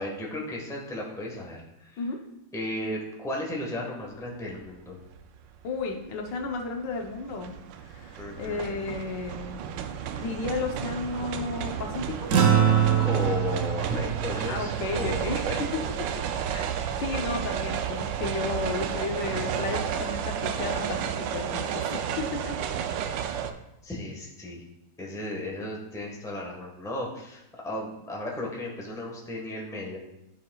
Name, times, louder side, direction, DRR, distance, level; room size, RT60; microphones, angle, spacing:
voice 1, 0.0-2.1 2.5-5.0 8.2-8.8 13.0-15.9 23.8-24.6 25.0-30.0, left 1 dB, ahead, -2 dB, 1.0 m, -35 dB
sound 1, 4.5-4.7 5.1-23.5, right 8 dB, 80° right, 1.2 m, -32 dB
voice 2, 5.6-7.5 7.8-9.6 10.2-12.3 14.4-15.4 15.7-16.1 16.5-22.6, left 3 dB, 75° left, 2 dB, 1.5 m, -33 dB
sound 2, 12.3-17.0, right 8 dB, 60° right, 0.9 m, -26 dB
12.5 x 5.1 x 2.3 m, 0.87 s
omnidirectional pair, 2.0 m